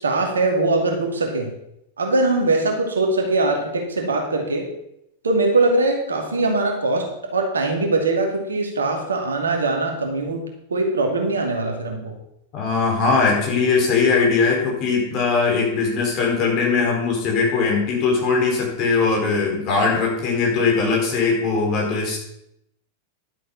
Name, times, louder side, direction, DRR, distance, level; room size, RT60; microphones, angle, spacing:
voice 1, 0.0-1.5 2.0-4.7 5.2-12.1, right 2 dB, 70° right, 2 dB, 2.5 m, -21 dB
voice 2, 12.5-22.2, left 4 dB, 40° left, -1 dB, 4.6 m, -20 dB
12.0 x 7.9 x 5.8 m, 0.80 s
figure-of-eight pair, 90°, 0 cm